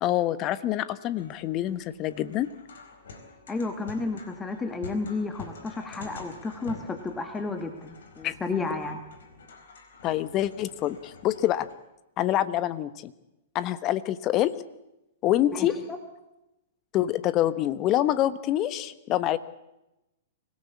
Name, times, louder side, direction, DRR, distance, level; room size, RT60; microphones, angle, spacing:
voice 1, 0.0-2.5 8.2-8.3 10.0-11.7 12.2-13.1 13.5-14.5 15.2-15.7 16.9-19.4, left 13 dB, 35° left, 15 dB, 1.2 m, -26 dB
sound 1, 1.2-11.7, left 3 dB, 65° left, 4.4 m, -47 dB
voice 2, 3.5-9.0 15.5-16.0, left 3 dB, 15° left, 7 dB, 1.8 m, -32 dB
25.0 x 17.5 x 8.5 m, 0.94 s
figure-of-eight pair, 110°, 0 cm